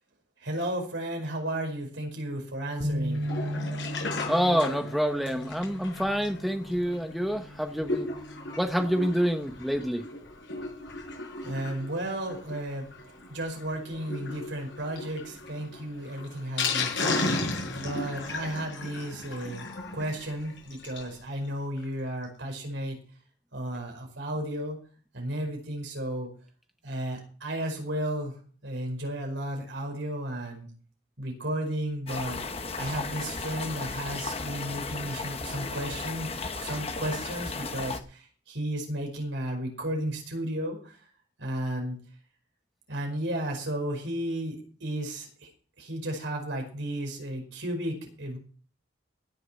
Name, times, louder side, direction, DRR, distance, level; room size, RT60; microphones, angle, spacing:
voice 1, 0.4-3.2 11.4-12.9 13.3-17.4 17.7-19.7 19.9-23.0 23.5-24.8 25.1-26.3 26.8-28.3 28.6-30.7 31.2-36.3 36.6-40.9 41.4-42.0 42.9-45.5 45.8-48.4, right 1 dB, 70° right, 2 dB, 5.1 m, -33 dB
sound 1, 2.8-9.1, equal, 35° right, 1.9 m, -37 dB
Sink (filling or washing), 3.1-21.2 21.5-21.6 21.8-21.9 22.2-22.3, left 3 dB, 70° left, 6.3 m, -36 dB
voice 2, 4.3-8.1 8.6-10.1, equal, ahead, 5 dB, 0.9 m, -27 dB
sound 2, 32.1-38.0, left 4 dB, 30° left, 1.0 m, -35 dB
17.0 x 7.3 x 5.9 m, 0.42 s
head